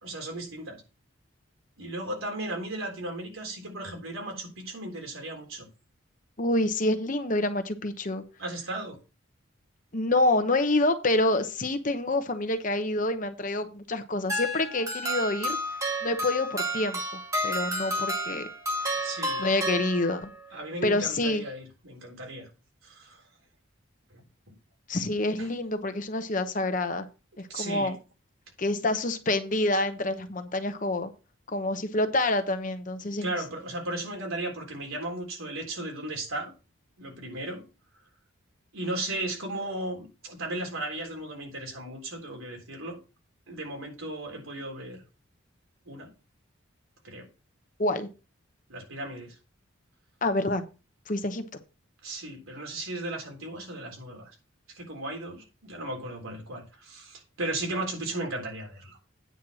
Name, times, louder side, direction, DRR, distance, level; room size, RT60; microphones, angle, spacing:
voice 1, 0.0-0.8 1.8-5.7 8.4-9.0 19.0-19.4 20.5-22.5 22.8-23.2 24.1-24.2 25.4-25.5 27.5-27.9 33.2-36.5 37.0-37.6 38.7-43.0 43.5-45.0 45.9-46.1 47.0-47.3 48.7-49.4 52.0-54.3 54.8-59.0, right 1 dB, 85° right, 1 dB, 3.7 m, -36 dB
voice 2, 6.4-8.2 9.9-15.6 16.0-18.5 18.9-19.1 19.4-20.3 20.8-21.4 24.9-27.1 27.4-28.0 28.6-31.1 31.5-33.3 47.8-48.1 50.2-50.6 51.1-51.4, left 2 dB, 40° left, 9 dB, 0.9 m, -27 dB
sound 1, 14.3-20.4, right 1 dB, 15° right, 1.3 m, -31 dB
9.2 x 4.5 x 6.3 m, 0.31 s
head